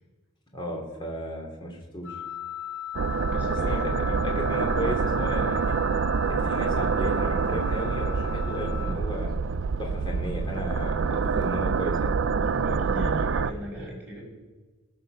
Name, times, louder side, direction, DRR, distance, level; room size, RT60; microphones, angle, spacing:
voice 1, 0.5-2.2 3.7-3.8 4.0-5.8 6.3-9.3 9.8-12.1, equal, 25° left, 0 dB, 2.6 m, -34 dB
Wind instrument woodwind instrument, 2.0-9.0, left 11 dB, 80° left, 0.9 m, -38 dB
sound 1, 2.9-13.5, right 5 dB, 65° right, 0.4 m, -26 dB
voice 2, 3.2-3.9 12.5-14.2, equal, 10° right, -5 dB, 5.5 m, -36 dB
18.5 x 6.9 x 6.5 m, 1.3 s
head